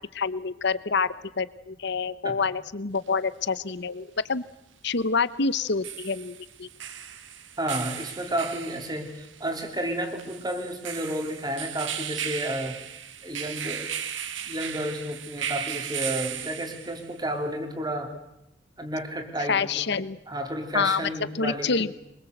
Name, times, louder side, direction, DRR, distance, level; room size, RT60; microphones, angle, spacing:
voice 1, 0.1-4.4 4.8-6.7 19.5-20.2 20.7-21.0 21.3-21.9, left 4 dB, 60° left, 16 dB, 0.9 m, -27 dB
sound 1, 3.0-3.1 5.6-17.2, right 9 dB, 75° right, 1.8 m, -36 dB
voice 2, 7.6-12.8 13.2-13.9 14.5-18.1 18.8-20.0 20.3-21.8, right 1 dB, 20° right, 5 dB, 3.1 m, -31 dB
24.5 x 22.5 x 8.0 m, 0.86 s
head